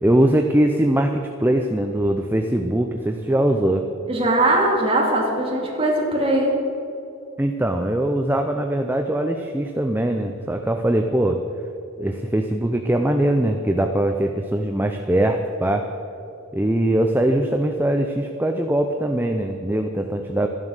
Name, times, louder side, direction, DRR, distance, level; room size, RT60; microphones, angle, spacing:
voice 1, 0.0-3.9 7.4-11.4 12.0-15.9 16.5-20.5, right 1 dB, 10° right, 4 dB, 0.5 m, -21 dB
voice 2, 4.1-6.5, right 1 dB, 25° right, -2 dB, 2.7 m, -20 dB
13.5 x 11.0 x 6.6 m, 2.8 s
head